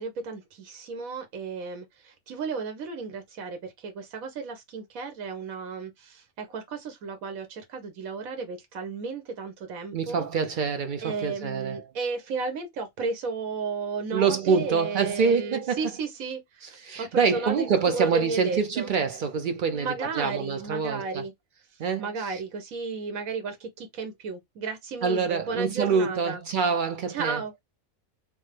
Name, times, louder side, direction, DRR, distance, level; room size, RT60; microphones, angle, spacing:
voice 1, 0.0-10.3 11.0-18.9 19.7-21.3 21.7-26.4 27.1-27.5, right 4 dB, 85° right, 1.3 m, -34 dB
voice 2, 9.9-11.8 14.1-15.8 16.8-21.2 21.8-22.4 25.0-27.4, right 5 dB, 65° right, 0.5 m, -26 dB
3.3 x 2.0 x 3.2 m
omnidirectional pair, 1.4 m